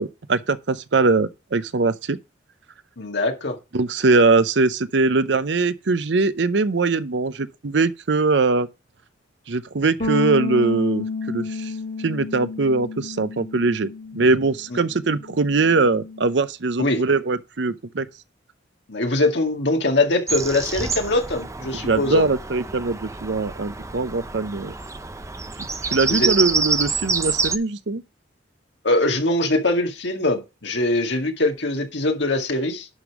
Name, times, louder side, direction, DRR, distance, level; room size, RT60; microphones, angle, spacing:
voice 1, 0.0-2.2 3.7-8.7 9.5-11.7 12.0-18.1 21.8-24.7 25.6-28.0, right 3 dB, 65° right, 0.7 m, -21 dB
voice 2, 3.0-3.6 16.8-17.0 18.9-22.3 26.1-26.3 28.8-32.9, left 2 dB, 65° left, 2.1 m, -22 dB
Bass guitar, 10.0-16.3, left 3 dB, 40° left, 2.5 m, -31 dB
Bird vocalization bird call bird song, 20.3-27.6, right 4 dB, 15° right, 0.7 m, -27 dB
11.0 x 5.4 x 4.8 m
head